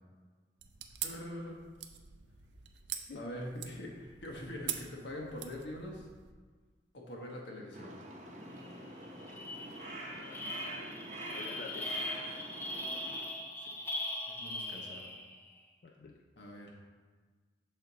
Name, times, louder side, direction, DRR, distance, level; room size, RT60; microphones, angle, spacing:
sound 1, 0.6-6.3, right 10 dB, 85° right, 0.5 m, -44 dB
voice 1, 1.0-1.6 3.1-6.1 6.9-7.9 13.6-13.7 14.3-15.1 16.4-16.8, left 1 dB, 85° left, -1 dB, 1.2 m, -43 dB
voice 2, 2.9-3.4 9.4-10.7 11.2-12.4 15.8-16.2, left 4 dB, 50° left, 1 dB, 0.4 m, -50 dB
Crow, 7.7-13.2, right 1 dB, 40° right, 0.7 m, -45 dB
sound 2, 8.6-8.7 9.0-15.4, left 1 dB, 15° left, 0.7 m, -40 dB
6.5 x 4.3 x 4.0 m, 1.4 s
head